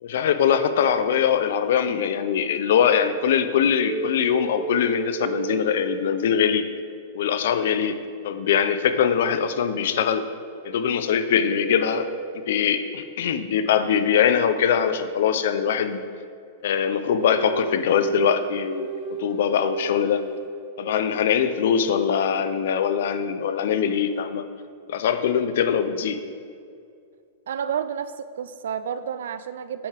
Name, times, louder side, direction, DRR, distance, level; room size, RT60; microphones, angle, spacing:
voice 1, 0.0-6.6 7.1-8.0 8.2-10.2 10.6-12.1 12.3-16.0 16.6-18.9 19.2-20.2 20.8-24.4 24.9-26.2, left 8 dB, 65° left, 11 dB, 0.4 m, -22 dB
sound 1, 3.7-6.9 10.4-13.0 17.1-21.0, right 4 dB, 35° right, 0.7 m, -34 dB
voice 2, 27.5-29.9, right 8 dB, 90° right, 13 dB, 0.3 m, -30 dB
8.4 x 5.4 x 3.4 m, 2.4 s
supercardioid pair, 170°, 0 cm